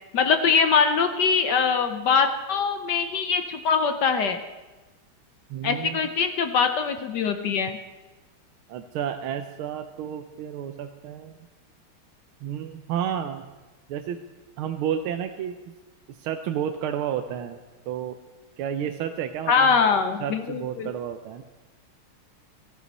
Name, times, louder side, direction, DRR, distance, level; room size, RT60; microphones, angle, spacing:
voice 1, 0.1-4.4 5.6-7.8 19.5-20.9, left 5 dB, 65° left, 8 dB, 1.2 m, -22 dB
voice 2, 5.5-6.0 8.7-11.5 12.4-13.4 13.9-14.2 14.6-15.6 16.1-17.6 17.9-18.2 18.6-19.8 20.2-21.4, right 9 dB, 80° right, 6 dB, 1.5 m, -31 dB
17.0 x 14.0 x 4.1 m, 1.2 s
omnidirectional pair, 2.3 m